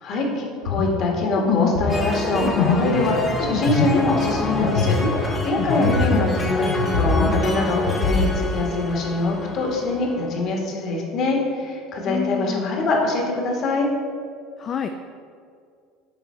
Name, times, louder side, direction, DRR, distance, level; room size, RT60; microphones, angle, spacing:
voice 1, 0.0-13.9, left 2 dB, 50° left, 0 dB, 1.4 m, -24 dB
sound 1, 0.6-6.4 6.7-8.3, left 4 dB, 80° left, 0.7 m, -23 dB
sound 2, 1.9-10.4, left 1 dB, 20° left, 1.0 m, -28 dB
voice 2, 12.1-12.7 14.6-14.9, left 8 dB, 35° left, 7 dB, 0.3 m, -27 dB
7.8 x 3.5 x 4.3 m, 2.2 s
supercardioid pair, 110°, 0 cm